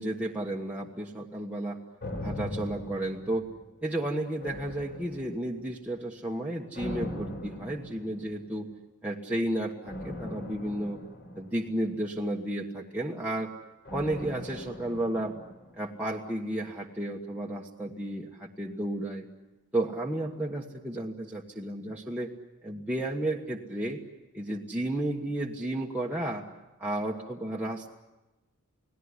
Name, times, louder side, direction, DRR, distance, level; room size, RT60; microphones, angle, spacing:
voice 1, 0.0-1.8 2.2-3.5 3.8-8.7 9.0-11.0 11.3-13.5 13.9-15.4 15.8-19.3 19.7-22.3 22.6-24.0 24.3-26.4 26.8-27.9, right 1 dB, 5° right, -3 dB, 1.4 m, -32 dB
sound 1, 2.0-3.9 4.4-5.7 6.7-8.5 9.9-12.3 13.9-16.0 16.3-16.4, left 1 dB, 50° left, 4.2 m, -40 dB
30.0 x 19.0 x 9.7 m, 1.1 s
head